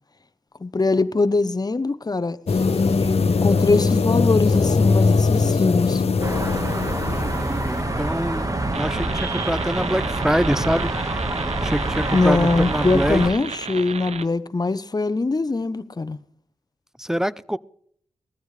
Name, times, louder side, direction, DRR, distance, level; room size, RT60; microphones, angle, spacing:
voice 1, 0.6-6.0 12.1-16.2, left 3 dB, 35° left, 0.9 m, -22 dB
sound 1, 2.5-8.4, left 4 dB, 65° left, 0.9 m, -21 dB
sound 2, 6.2-13.3, right 2 dB, 30° right, 1.6 m, -26 dB
voice 2, 7.1-10.9 11.6-13.2 17.0-17.6, equal, 5° right, 0.6 m, -25 dB
sound 3, 8.7-14.3, right 6 dB, 75° right, 0.6 m, -34 dB
20.0 x 14.0 x 3.3 m
cardioid pair, 45°, 11 cm